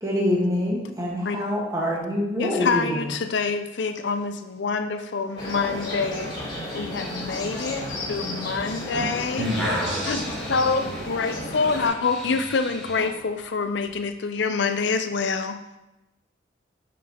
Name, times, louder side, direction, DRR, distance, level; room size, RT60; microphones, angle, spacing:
voice 1, 0.0-3.0, left 1 dB, 15° right, -3 dB, 1.5 m, -25 dB
voice 2, 2.4-6.4 6.7-9.5 10.0-15.6, left 4 dB, 65° left, 9 dB, 0.5 m, -26 dB
sound 1, 5.4-11.9, left 1 dB, 25° left, 2.1 m, -33 dB
sound 2, 9.3-13.2 13.8-14.0, equal, ahead, 1.6 m, -34 dB
voice 3, 9.4-10.2, equal, 75° right, -2 dB, 1.7 m, -28 dB
6.7 x 5.3 x 4.2 m, 0.97 s
head